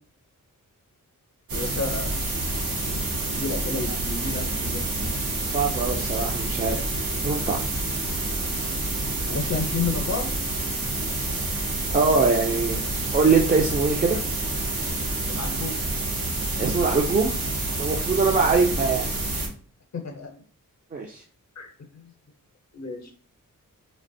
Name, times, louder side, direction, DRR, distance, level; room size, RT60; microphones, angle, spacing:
voice 1, 1.5-2.1 3.3-5.4 9.3-10.3 15.3-15.8 18.1-18.3 19.9-20.3 21.6-22.0 22.7-23.1, left 4 dB, 55° left, 3 dB, 0.6 m, -31 dB
sound 1, 1.5-19.5, right 2 dB, 85° right, 0.8 m, -28 dB
voice 2, 5.5-6.8 7.2-7.6 11.5-11.6 11.9-12.8 13.1-14.2 16.6-17.4 17.8-19.1 20.9-21.2, right 4 dB, 25° right, -2 dB, 0.3 m, -22 dB
3.2 x 2.1 x 2.5 m, 0.43 s
wide cardioid pair, 105°, 34 cm